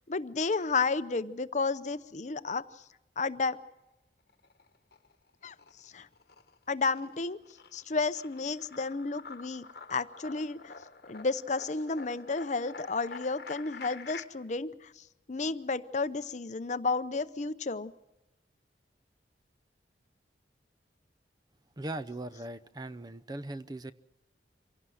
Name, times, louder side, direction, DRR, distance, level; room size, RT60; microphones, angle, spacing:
voice 1, 0.0-2.6 3.2-3.6 5.4-5.5 5.8-6.1 6.7-7.4 7.7-10.7 11.1-17.9, left 4 dB, 45° left, 0.7 m, -32 dB
sound 1, 4.3-5.1 5.4-14.2, left 4 dB, 60° left, 1.6 m, -48 dB
voice 2, 21.8-23.9, right 1 dB, 25° right, 0.6 m, -39 dB
25.5 x 17.0 x 6.4 m
head